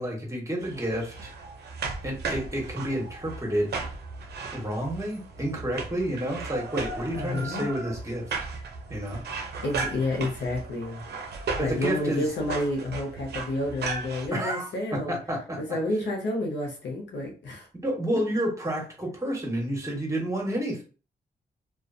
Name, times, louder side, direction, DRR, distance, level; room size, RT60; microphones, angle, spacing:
voice 1, 0.0-1.3 2.0-3.7 4.5-8.3 8.9-9.2 11.6-12.2 14.3-15.6 17.8-20.8, right 1 dB, 15° right, -1 dB, 1.2 m, -30 dB
sound 1, 0.6-14.3, right 4 dB, 70° right, 0.5 m, -36 dB
voice 2, 7.1-7.7 9.6-11.0 11.6-15.2 15.6-17.7, left 2 dB, 85° left, 0 dB, 0.8 m, -30 dB
2.4 x 2.3 x 2.5 m, 0.36 s
cardioid pair, 55°, 18 cm